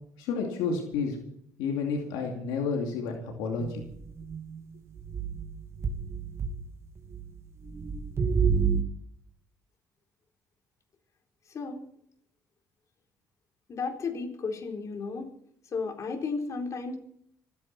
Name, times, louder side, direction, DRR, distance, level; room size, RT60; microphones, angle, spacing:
voice 1, 0.2-1.2 1.6-3.8, left 5 dB, 90° left, 2 dB, 2.6 m, -30 dB
sound 1, 3.6-4.6 5.0-6.6 7.0-7.3 7.6-8.8, right 6 dB, 40° right, 2.4 m, -29 dB
voice 2, 11.5-11.9 13.7-15.3 15.7-17.0, left 4 dB, 50° left, 2 dB, 3.9 m, -33 dB
26.5 x 9.9 x 4.3 m, 0.71 s
supercardioid pair, 75°, 7 cm